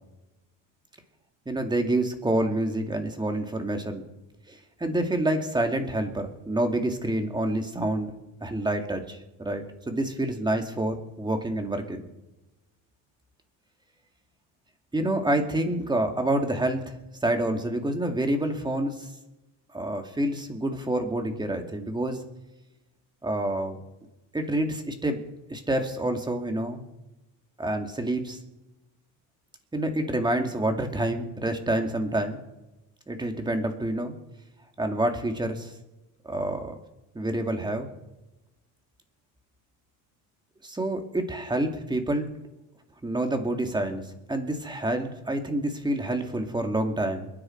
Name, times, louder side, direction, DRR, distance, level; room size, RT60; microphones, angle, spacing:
voice 1, 1.5-4.0 4.5-8.1 8.4-12.0 14.9-17.0 17.2-19.1 19.7-22.2 23.2-23.8 24.3-25.2 25.5-26.8 27.6-28.4 29.7-32.4 33.1-34.1 34.8-35.7 36.2-36.8 37.1-37.9 40.6-42.3 43.0-47.3, right 1 dB, 10° right, 5 dB, 2.4 m, -28 dB
29.5 x 9.9 x 4.6 m, 1.0 s
cardioid pair, 120°, 38 cm